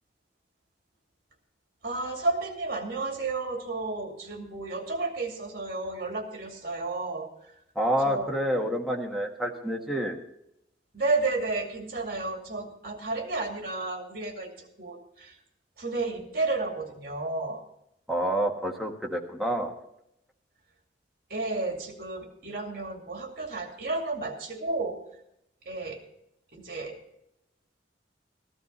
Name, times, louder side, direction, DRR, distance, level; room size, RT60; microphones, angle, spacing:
voice 1, 1.8-7.3 8.0-8.3 10.9-15.3 15.8-17.6 21.3-25.0 25.7-26.0 26.5-27.0, right 3 dB, 55° right, 3 dB, 2.5 m, -32 dB
voice 2, 7.7-10.2 18.1-19.7, equal, ahead, 0 dB, 1.3 m, -28 dB
14.5 x 12.5 x 4.0 m, 0.78 s
head